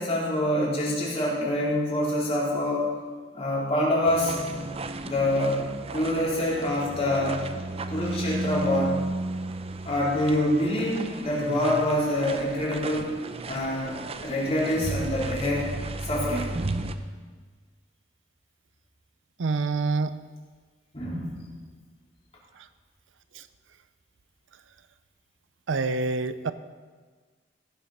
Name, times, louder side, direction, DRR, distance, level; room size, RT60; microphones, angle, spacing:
voice 1, 0.0-2.9 3.3-4.3 5.0-7.5 7.9-9.1 9.8-13.1 13.4-15.7 16.0-16.6 20.9-21.4, left 1 dB, 35° left, -6 dB, 3.9 m, -26 dB
sound 1, 4.1-17.0, right 2 dB, 30° right, 0.6 m, -34 dB
voice 2, 19.4-20.2 23.4-23.5 25.7-26.5, right 3 dB, 85° right, 13 dB, 0.6 m, -26 dB
16.0 x 7.3 x 5.8 m, 1.5 s
head